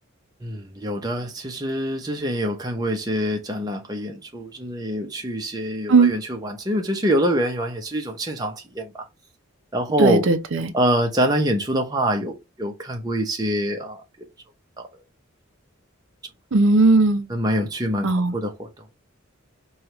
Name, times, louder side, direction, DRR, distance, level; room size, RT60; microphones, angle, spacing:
voice 1, 0.4-8.9 9.7-10.2 10.7-14.0 14.8-14.9 17.3-18.7, equal, 20° right, 0.7 m, -25 dB
voice 2, 10.0-10.7 16.5-17.3 18.0-18.3, right 3 dB, 70° right, 0.5 m, -17 dB
4.8 x 2.4 x 2.9 m
head